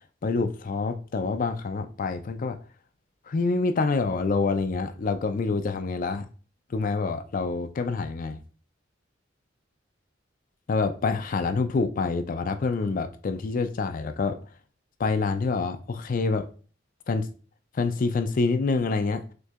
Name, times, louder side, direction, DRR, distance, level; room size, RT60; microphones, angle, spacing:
voice 1, 0.2-2.6 3.3-6.3 6.7-8.4 10.7-14.4 15.0-16.5 17.1-17.3 17.7-19.2, left 4 dB, 45° left, 0.4 m, -26 dB
6.3 x 2.7 x 2.4 m
head